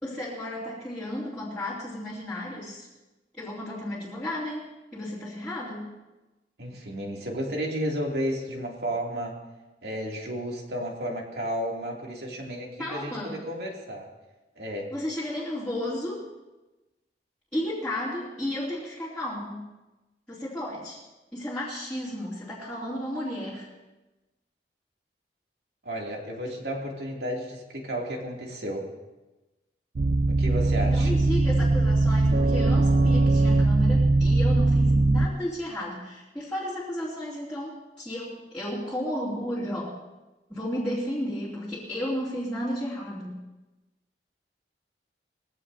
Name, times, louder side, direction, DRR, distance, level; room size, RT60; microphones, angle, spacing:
voice 1, 0.0-2.9 3.4-4.7 4.9-5.9 12.8-13.4 14.9-16.3 17.5-19.6 20.3-21.0 21.3-23.7 30.8-39.9 40.5-43.3, left 1 dB, 5° left, -12 dB, 2.7 m, -33 dB
voice 2, 6.6-9.4 9.8-14.1 14.6-14.9 25.8-28.9 30.3-31.1, equal, 65° right, -1 dB, 2.7 m, -32 dB
sound 1, 30.0-35.3, right 2 dB, 50° right, 0.4 m, -21 dB
21.0 x 15.0 x 2.7 m, 1.1 s
head